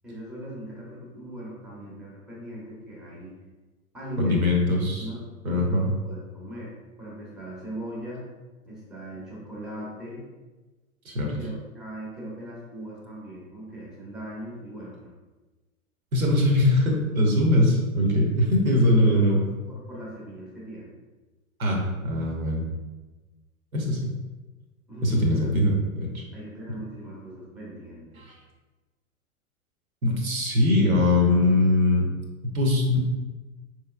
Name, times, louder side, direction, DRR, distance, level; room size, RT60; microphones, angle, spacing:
voice 1, 0.0-3.3 3.9-4.5 5.0-8.3 8.6-10.3 11.2-15.1 18.7-20.9 24.9-25.5 26.3-28.2, right 1 dB, ahead, -5 dB, 0.6 m, -39 dB
voice 2, 4.2-5.0 5.4-5.9 11.0-11.3 16.1-19.4 21.6-22.6 23.7-24.1 25.0-26.2 30.0-32.0 32.4-33.0, left 1 dB, 70° right, 0 dB, 1.0 m, -21 dB
4.6 x 3.1 x 2.3 m, 1.2 s
figure-of-eight pair, 95°, 43 cm